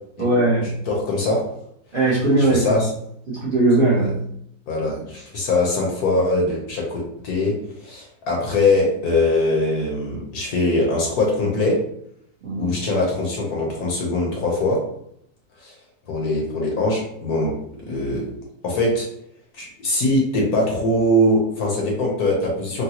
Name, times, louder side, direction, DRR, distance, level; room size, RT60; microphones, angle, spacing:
voice 1, 0.2-0.8 1.9-2.8 3.3-4.2 12.4-12.7, right 2 dB, 40° right, -8 dB, 0.9 m, -19 dB
voice 2, 0.9-1.4 2.4-2.9 4.7-11.8 12.6-14.8 15.6-15.7 16.1-18.3 18.6-19.1 19.5-22.8, left 2 dB, 65° left, -1 dB, 1.2 m, -22 dB
3.9 x 2.2 x 2.8 m, 0.72 s
omnidirectional pair, 1.9 m